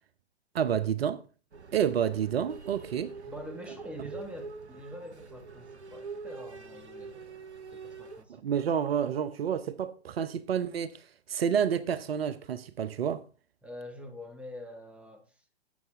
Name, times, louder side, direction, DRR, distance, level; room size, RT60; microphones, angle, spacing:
voice 1, 0.5-1.2 1.7-3.1 8.3-13.2, right 8 dB, 65° right, 0.8 m, -29 dB
sound 1, 1.5-8.2, right 4 dB, 85° right, 1.0 m, -44 dB
voice 2, 3.3-7.4 7.7-8.4 13.6-15.4, equal, 5° right, 1.5 m, -45 dB
11.0 x 8.0 x 3.5 m
figure-of-eight pair, 115°, 33 cm